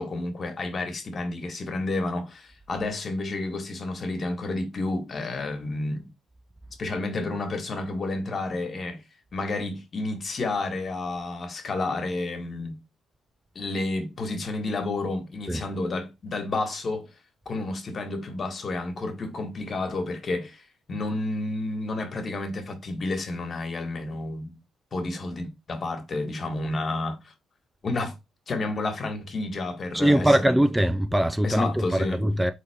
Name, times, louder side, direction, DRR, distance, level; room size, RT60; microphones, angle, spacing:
voice 1, 0.0-6.1 6.8-9.0 9.3-12.8 13.6-17.1 17.5-24.6 24.9-27.3 27.8-28.1 28.5-30.6 31.4-32.2, left 2 dB, 45° left, 1.6 m, -30 dB
voice 2, 29.9-32.5, right 1 dB, 10° right, 0.4 m, -22 dB
4.1 x 3.6 x 3.5 m
cardioid pair, 90°, 0 cm